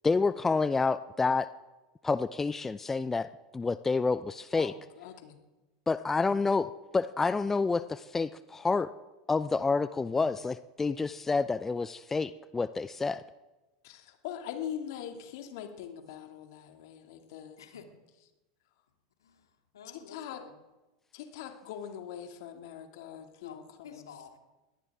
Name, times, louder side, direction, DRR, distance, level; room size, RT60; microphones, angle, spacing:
voice 1, 0.0-1.5 2.0-4.7 5.9-8.9 9.3-13.2, left 4 dB, 15° left, 0.5 m, -29 dB
voice 2, 4.5-5.4 10.1-10.4 13.8-17.6 19.9-20.4 21.1-23.6 23.9-24.1, left 9 dB, 60° left, 2.2 m, -42 dB
voice 3, 19.2-20.5 23.4-24.4, left 7 dB, 75° left, 2.1 m, -51 dB
22.0 x 17.5 x 3.6 m
hypercardioid pair, 85°, 2 cm